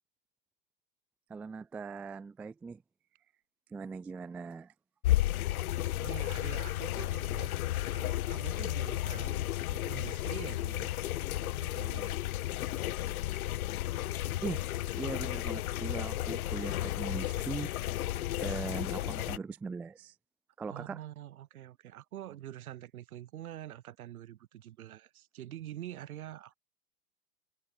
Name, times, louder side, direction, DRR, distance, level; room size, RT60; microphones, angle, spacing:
voice 1, 1.3-2.8 3.7-4.7 14.4-14.7 15.0-17.7 18.1-20.2 20.6-21.0, right 4 dB, 5° right, 0.3 m, -40 dB
sound 1, 5.0-19.4, left 14 dB, 60° left, 0.7 m, -33 dB
voice 2, 6.0-7.5 7.9-10.9 11.4-12.2 20.7-26.6, right 12 dB, 60° right, 3.3 m, -46 dB
figure-of-eight pair, 95°, 48 cm